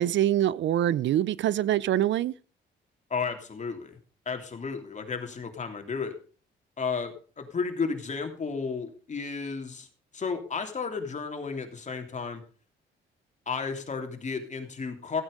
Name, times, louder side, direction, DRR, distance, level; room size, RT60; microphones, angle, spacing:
voice 1, 0.0-2.3, right 12 dB, 70° right, 0.6 m, -24 dB
voice 2, 3.1-4.0 4.2-6.2 6.8-9.9 10.1-12.4 13.5-15.2, left 5 dB, 35° left, 3.2 m, -33 dB
15.5 x 8.9 x 5.3 m
cardioid pair, 90°, 20 cm